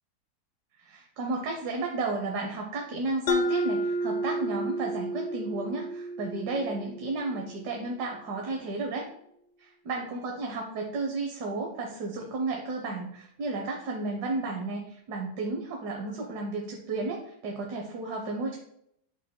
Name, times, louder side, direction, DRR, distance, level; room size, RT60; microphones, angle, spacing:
voice 1, 0.8-9.1 9.6-18.6, right 3 dB, 65° right, 0 dB, 1.4 m, -33 dB
Mallet percussion, 3.3-7.8, equal, 75° left, 1.2 m, -31 dB
8.9 x 5.8 x 2.2 m, 0.74 s
omnidirectional pair, 2.0 m